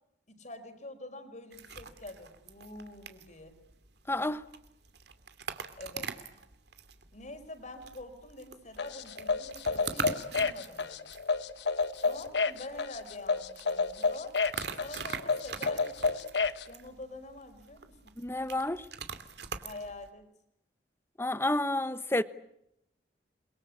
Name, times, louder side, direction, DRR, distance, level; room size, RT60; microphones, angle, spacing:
voice 1, 0.3-3.5 5.8-6.1 7.1-11.1 12.0-14.4 14.8-16.3 16.7-18.1 19.6-20.2, left 2 dB, 45° left, 5.1 m, -46 dB
sound 1, 1.5-20.1, right 5 dB, 65° right, 2.7 m, -44 dB
voice 2, 4.1-4.4 18.2-18.8 21.2-22.2, left 1 dB, 15° left, 1.1 m, -30 dB
sound 2, 8.8-16.6, left 4 dB, 75° left, 1.4 m, -30 dB
29.5 x 23.0 x 8.6 m
head